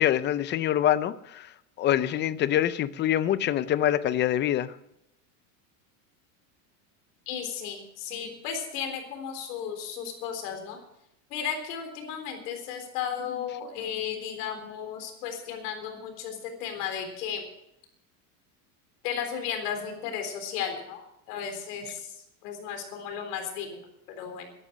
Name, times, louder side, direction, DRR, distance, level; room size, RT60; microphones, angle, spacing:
voice 1, 0.0-1.5 1.8-4.7, left 11 dB, 25° left, 15 dB, 0.5 m, -25 dB
voice 2, 7.3-10.8 11.3-17.5 19.0-21.0 21.3-22.1 22.4-23.8 24.2-24.5, left 7 dB, 90° left, 6 dB, 3.9 m, -34 dB
14.0 x 11.0 x 6.1 m, 0.81 s
cardioid pair, 155°, 46 cm